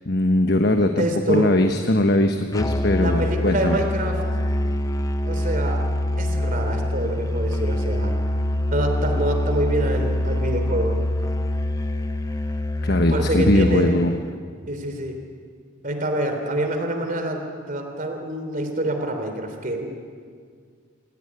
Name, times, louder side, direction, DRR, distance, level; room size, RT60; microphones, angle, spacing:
voice 1, 0.0-3.8 12.8-14.2, left 1 dB, 50° left, 5 dB, 1.2 m, -20 dB
voice 2, 1.0-1.5 2.9-4.2 5.3-5.9 6.2-8.1 8.7-11.0 13.1-13.9 14.7-15.2 15.8-19.9, right 1 dB, 40° right, 5 dB, 3.5 m, -26 dB
Musical instrument, 2.5-14.2, left 1 dB, 15° left, 0.8 m, -25 dB
27.0 x 16.5 x 9.6 m, 2.1 s
head